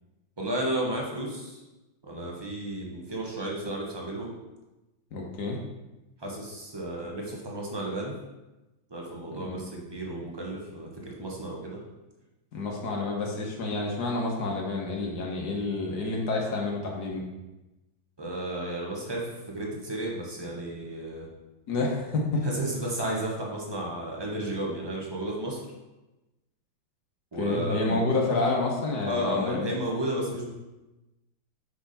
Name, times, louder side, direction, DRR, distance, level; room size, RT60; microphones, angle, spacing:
voice 1, 0.4-1.6 2.0-4.3 6.2-8.1 8.9-11.8 18.2-21.3 22.4-25.6 27.3-28.0 29.1-30.5, right 1 dB, 20° right, -2 dB, 0.7 m, -33 dB
voice 2, 5.1-5.6 9.3-9.6 12.5-17.2 21.7-22.4 27.3-29.7, left 3 dB, 55° left, -1 dB, 1.6 m, -29 dB
5.9 x 5.7 x 4.1 m, 1.0 s
omnidirectional pair, 2.2 m